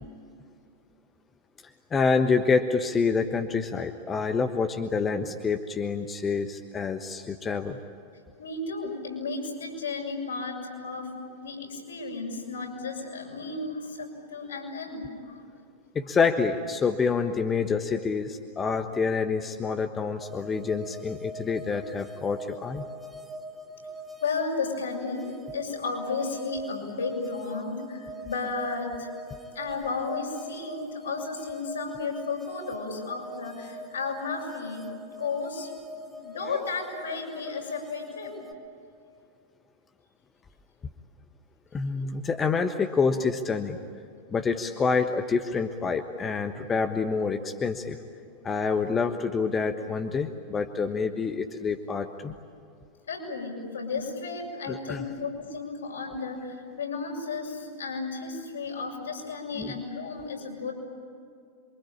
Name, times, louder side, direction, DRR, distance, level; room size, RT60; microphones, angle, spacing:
voice 1, 1.9-7.8 15.9-22.8 41.7-43.8 44.3-48.0 48.4-52.3 54.7-55.0 59.6-59.8, left 5 dB, 20° left, 6 dB, 1.3 m, -27 dB
voice 2, 8.4-11.1 11.4-15.4 24.2-25.2 25.5-29.1 29.5-34.9 35.2-35.7 36.2-38.4 53.1-60.7, left 4 dB, 70° left, -1 dB, 7.1 m, -33 dB
sound 1, 20.2-38.5, right 1 dB, 5° right, 1.9 m, -42 dB
27.5 x 24.5 x 8.8 m, 2.4 s
figure-of-eight pair, 90°, 0 cm